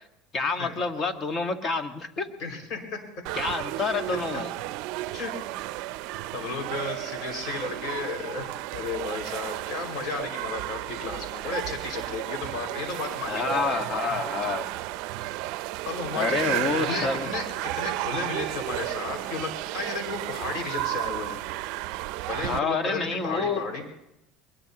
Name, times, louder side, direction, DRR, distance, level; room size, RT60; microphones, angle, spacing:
voice 1, 0.3-2.3 3.3-4.5 13.2-14.7 16.1-17.3 22.4-23.6, left 4 dB, 30° left, 6 dB, 1.6 m, -28 dB
voice 2, 2.4-3.0 4.3-4.4 5.1-5.4 6.3-13.6 15.9-17.5 17.7-21.4 22.2-23.8, left 3 dB, 55° left, 2 dB, 5.4 m, -33 dB
sound 1, 3.2-22.6, right 17 dB, 65° right, 0.5 m, -33 dB
22.0 x 21.0 x 3.0 m, 0.87 s
supercardioid pair, 125°, 0 cm